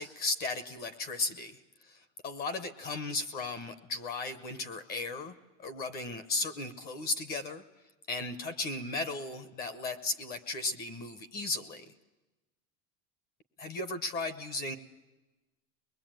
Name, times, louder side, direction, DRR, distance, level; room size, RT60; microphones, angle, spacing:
voice 1, 0.0-1.6 1.9-7.6 8.1-11.8 13.6-14.7, left 3 dB, 20° left, 13 dB, 0.9 m, -36 dB
24.0 x 21.0 x 9.0 m, 1.1 s
supercardioid pair, 180°, 43 cm